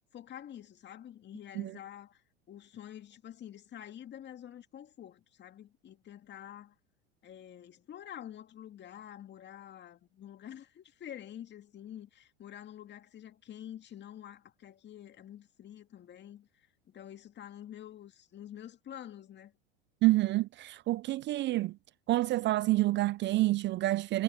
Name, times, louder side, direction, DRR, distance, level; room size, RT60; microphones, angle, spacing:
voice 1, 0.1-6.7 7.2-19.5, left 10 dB, 35° left, 2.2 m, -48 dB
voice 2, 20.0-21.8 22.1-24.2, right 17 dB, 35° right, 0.5 m, -28 dB
hypercardioid pair, 90°, 31 cm